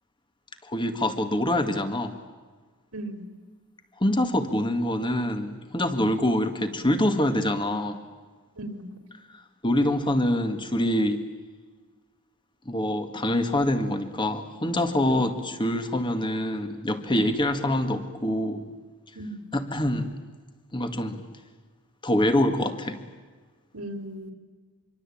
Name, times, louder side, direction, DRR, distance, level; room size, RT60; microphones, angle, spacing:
voice 1, 0.7-2.1 4.0-8.0 9.6-11.2 12.7-18.6 19.5-20.1 20.7-21.2 22.0-23.0, left 1 dB, 20° left, 8 dB, 2.0 m, -25 dB
voice 2, 2.9-3.3 8.5-8.9 15.1-15.4 19.1-19.5 23.7-24.3, right 1 dB, 85° right, 7 dB, 3.4 m, -37 dB
25.5 x 24.0 x 8.7 m, 1.4 s
head